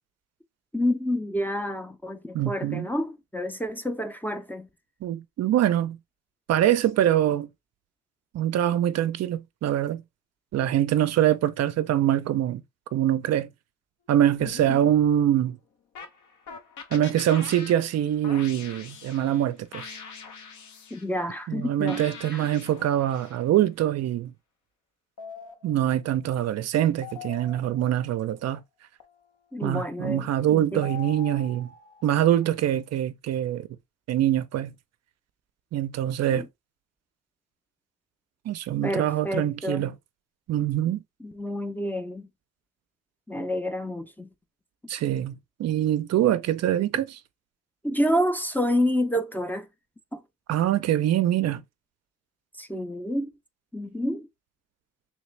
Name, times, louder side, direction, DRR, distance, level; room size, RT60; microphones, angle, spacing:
voice 1, 0.7-4.7 14.7-14.8 20.9-22.0 22.3-22.5 29.5-30.8 36.3-36.5 38.8-39.9 41.2-42.3 43.3-44.3 47.8-49.7 50.1-50.2 52.6-53.3 53.7-54.3, equal, 5° left, 0.5 m, -28 dB
voice 2, 2.3-2.9 5.0-6.0 6.5-7.5 8.3-10.0 10.5-12.6 12.9-13.5 14.1-15.6 16.9-20.0 21.5-24.3 25.6-28.6 29.6-31.7 32.0-33.7 34.1-34.7 35.7-36.5 38.5-39.9 40.5-41.0 44.9-47.2 50.5-51.6, right 11 dB, 60° right, 0.4 m, -24 dB
sound 1, 14.4-15.4 15.9-19.4 19.7-21.0 21.9-23.4 25.2-26.1 27.0-28.0 29.0-29.3 30.0-30.2 30.8-32.6, left 6 dB, 70° left, 0.9 m, -43 dB
3.2 x 3.1 x 3.2 m
cardioid pair, 90°, 30 cm